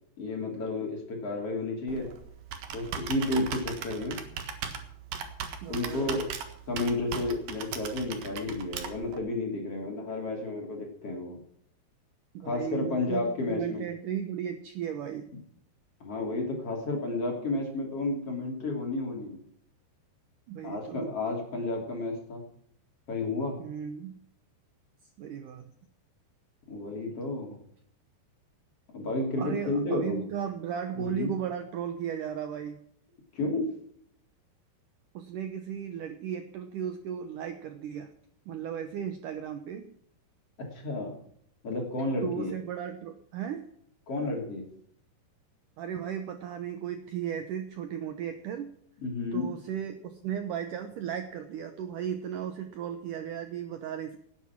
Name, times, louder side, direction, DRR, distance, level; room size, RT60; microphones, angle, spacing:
voice 1, 0.2-2.1 2.7-4.2 5.7-6.3 6.7-11.4 12.4-13.8 16.0-19.4 20.6-22.4 23.1-23.6 26.7-27.6 28.9-30.3 31.0-31.3 33.3-33.7 40.6-41.2 41.6-42.5 44.1-44.6 49.0-49.5, left 2 dB, 35° left, 1 dB, 3.6 m, -31 dB
Computer keyboard, 1.9-9.2, right 7 dB, 60° right, 2.7 m, -38 dB
voice 2, 5.6-6.2 12.3-15.3 20.5-21.1 23.6-24.2 25.2-25.7 29.4-32.8 35.1-38.1 38.5-39.9 42.2-43.7 45.8-48.7 49.3-54.2, right 9 dB, 85° right, 7 dB, 1.8 m, -35 dB
18.0 x 9.2 x 5.9 m, 0.69 s
omnidirectional pair, 5.1 m